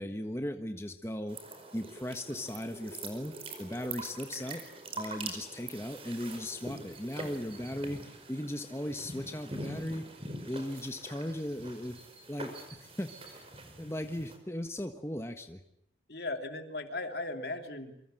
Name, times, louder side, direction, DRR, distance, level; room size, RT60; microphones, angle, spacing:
voice 1, 0.0-1.4 1.7-4.6 4.9-10.1 10.4-12.0 12.3-13.4 13.8-15.6, left 1 dB, 15° left, 6 dB, 1.4 m, -37 dB
sound 1, 1.3-14.4, right 2 dB, 35° right, 5.0 m, -44 dB
voice 2, 16.1-17.9, left 2 dB, 65° left, 6 dB, 3.2 m, -37 dB
27.5 x 24.5 x 7.9 m, 0.74 s
head